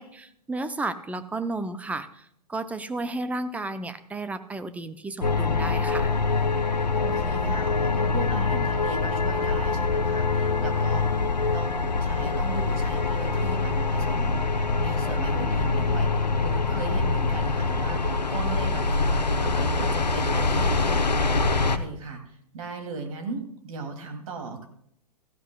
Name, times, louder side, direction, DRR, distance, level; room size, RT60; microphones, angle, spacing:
voice 1, 0.0-6.1, right 2 dB, 5° right, 11 dB, 0.7 m, -33 dB
sound 1, 5.2-21.8, left 3 dB, 90° left, 1.0 m, -24 dB
voice 2, 6.9-11.1 11.5-24.7, right 3 dB, 55° right, 5 dB, 2.9 m, -37 dB
16.5 x 15.0 x 2.4 m, 0.70 s
figure-of-eight pair, 115°, 21 cm